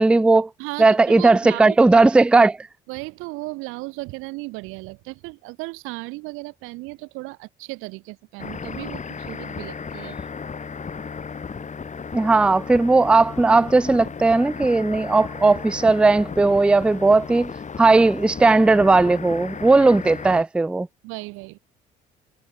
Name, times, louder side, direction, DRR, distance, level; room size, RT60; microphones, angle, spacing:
voice 1, 0.0-0.5 0.8-2.6 12.1-17.5 17.8-20.9, right 3 dB, 5° right, 0.4 m, -17 dB
voice 2, 0.6-1.8 2.9-10.2 21.0-21.6, right 24 dB, 80° right, 0.8 m, -35 dB
sound 1, 8.4-20.4, left 5 dB, 35° left, 2.4 m, -35 dB
hypercardioid pair, 60°, 21 cm